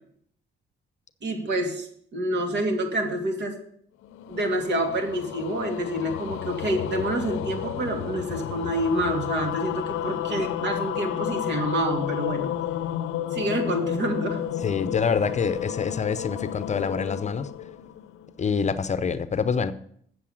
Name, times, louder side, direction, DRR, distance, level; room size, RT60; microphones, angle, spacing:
voice 1, 1.2-3.5 4.3-12.5 13.3-14.4, right 1 dB, 60° right, 3 dB, 2.7 m, -27 dB
sound 1, 4.0-18.5, left 11 dB, 85° left, 0.6 m, -32 dB
voice 2, 14.6-17.5 18.4-19.7, left 6 dB, 35° left, 13 dB, 0.7 m, -26 dB
7.9 x 7.4 x 8.6 m, 0.65 s
cardioid pair, 90°, 20 cm